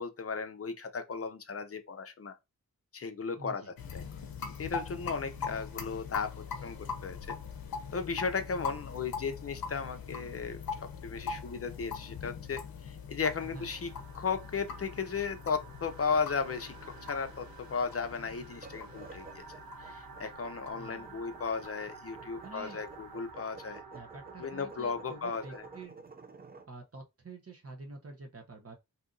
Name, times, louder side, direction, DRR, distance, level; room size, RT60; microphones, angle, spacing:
voice 1, 0.0-2.4 2.9-3.6 3.9-4.0 4.6-6.3 6.6-7.4 7.9-10.6 11.0-16.7 17.0-19.4 19.8-23.8 24.4-25.6, left 5 dB, 40° left, 0.6 m, -35 dB
voice 2, 3.4-3.7 5.3-5.7 13.4-13.7 20.8-21.2 22.4-22.8 23.9-26.0 26.7-28.7, right 3 dB, 45° right, 0.8 m, -48 dB
sound 1, 3.8-23.0, left 6 dB, 85° left, 0.6 m, -42 dB
sound 2, 13.3-25.8, right 4 dB, 80° right, 0.7 m, -51 dB
sound 3, 18.6-26.7, right 3 dB, 25° right, 0.4 m, -52 dB
2.8 x 2.5 x 3.8 m
wide cardioid pair, 110°, 35 cm